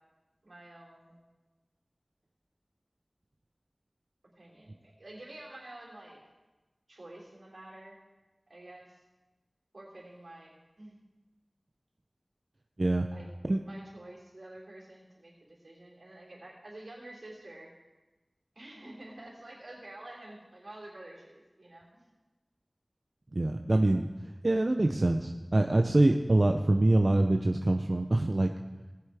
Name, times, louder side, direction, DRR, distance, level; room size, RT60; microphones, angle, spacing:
voice 1, 0.4-1.2 4.4-6.2 6.9-8.0 8.5-9.0 9.7-11.0 13.1-13.3 13.6-17.7 18.6-22.1, right 1 dB, 85° right, -5 dB, 3.5 m, -49 dB
voice 2, 23.3-24.1 24.4-28.5, right 2 dB, 55° right, 4 dB, 0.5 m, -25 dB
18.5 x 7.9 x 3.5 m, 1.2 s
wide cardioid pair, 40°, 0 cm